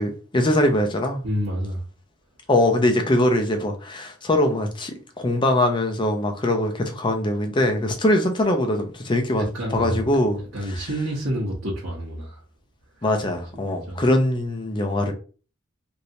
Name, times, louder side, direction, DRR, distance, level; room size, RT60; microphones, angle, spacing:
voice 1, 0.0-1.2 2.5-10.4 10.7-10.8 13.0-15.1, left 1 dB, 25° left, 0.5 m, -22 dB
voice 2, 1.2-1.8 9.4-12.4 13.5-14.0, equal, 80° right, 0.9 m, -29 dB
3.1 x 2.7 x 2.7 m
head